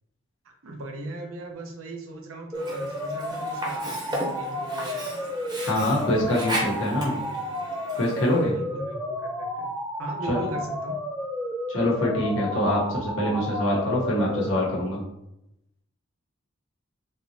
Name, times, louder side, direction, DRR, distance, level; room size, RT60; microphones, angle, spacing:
voice 1, 0.4-5.0 8.4-9.7 10.0-11.0, right 1 dB, 85° right, 1 dB, 0.7 m, -38 dB
sound 1, 2.5-14.5, equal, 5° right, 0.3 m, -32 dB
Sink (filling or washing), 2.5-8.5, equal, 20° right, 0.7 m, -35 dB
voice 2, 5.7-7.2 8.0-8.5 10.3-10.4 11.7-15.0, left 1 dB, 70° left, -4 dB, 1.0 m, -24 dB
3.5 x 2.8 x 2.7 m, 0.84 s
head